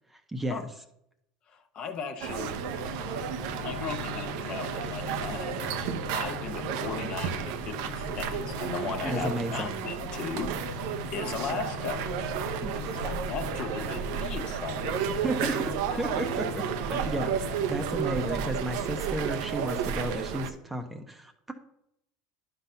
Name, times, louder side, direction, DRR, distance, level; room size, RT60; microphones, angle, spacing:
voice 1, 0.1-0.7 9.0-9.7 12.6-12.9 15.2-16.6 16.9-21.5, right 1 dB, 10° right, 6 dB, 0.8 m, -33 dB
voice 2, 1.7-2.6 3.1-3.3 3.6-5.7 6.1-10.5 11.1-12.3 12.6-15.0 15.9-16.2, left 5 dB, 45° left, 7 dB, 1.1 m, -37 dB
sound 1, 2.2-20.5, right 8 dB, 75° right, 0.7 m, -32 dB
sound 2, 2.4-18.8, left 9 dB, 80° left, 0.8 m, -41 dB
10.5 x 4.0 x 5.7 m, 0.77 s
supercardioid pair, 125°, 2 cm